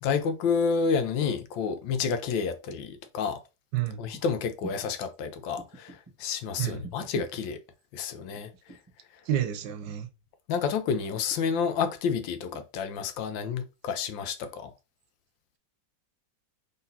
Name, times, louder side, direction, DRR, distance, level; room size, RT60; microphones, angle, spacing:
voice 1, 0.0-3.4 4.0-7.6 7.9-8.5 10.5-14.7, left 6 dB, 85° left, 1.4 m, -29 dB
sound 1, 4.1-4.2 4.6-4.9 5.6-6.1 6.8-7.4 8.3-8.9 9.3-9.9 11.0-11.6 12.5-12.6, right 3 dB, 20° right, 1.1 m, -46 dB
voice 2, 9.3-10.1, right 11 dB, 75° right, 1.2 m, -29 dB
3.9 x 3.8 x 2.7 m
omnidirectional pair, 2.0 m